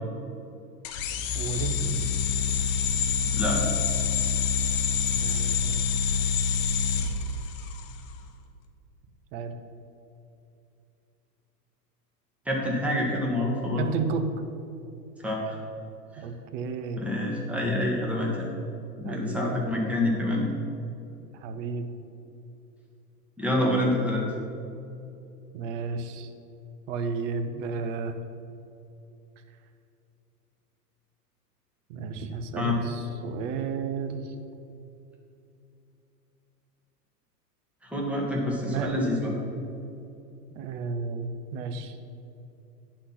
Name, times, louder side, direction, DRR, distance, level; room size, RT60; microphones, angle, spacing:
sound 1, 0.8-8.0, left 6 dB, 55° left, 0.9 m, -26 dB
voice 1, 1.3-2.1 5.2-6.0 9.3-9.5 13.8-14.3 16.2-17.1 19.0-19.6 21.3-21.9 25.5-26.3 26.9-28.2 31.9-34.3 38.6-38.9 40.6-42.0, right 5 dB, 50° right, 8 dB, 0.9 m, -33 dB
voice 2, 3.3-3.7 12.4-13.8 15.2-15.6 16.1-16.2 17.0-18.5 19.0-20.5 23.4-24.2 32.5-32.8 37.8-39.6, left 1 dB, 5° right, -3 dB, 1.6 m, -27 dB
9.6 x 4.3 x 5.9 m, 2.7 s
hypercardioid pair, 105°, 48 cm